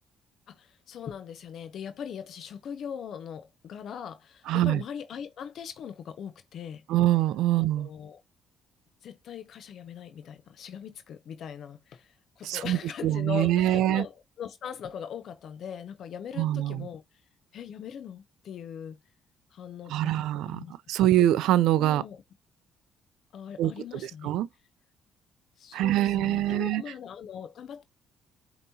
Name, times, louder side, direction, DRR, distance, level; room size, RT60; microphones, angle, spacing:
voice 1, 0.5-6.8 7.5-8.2 9.0-17.0 17.5-19.0 19.5-20.7 21.0-21.1 21.8-22.2 23.3-24.3 25.6-27.8, left 8 dB, 65° left, 0.5 m, -40 dB
voice 2, 4.5-4.8 6.9-7.9 12.4-14.0 16.4-16.9 19.9-22.0 23.6-23.7 24.0-24.5 25.7-26.8, right 13 dB, 80° right, 0.3 m, -24 dB
5.3 x 2.9 x 2.7 m
cardioid pair, 80°, 0 cm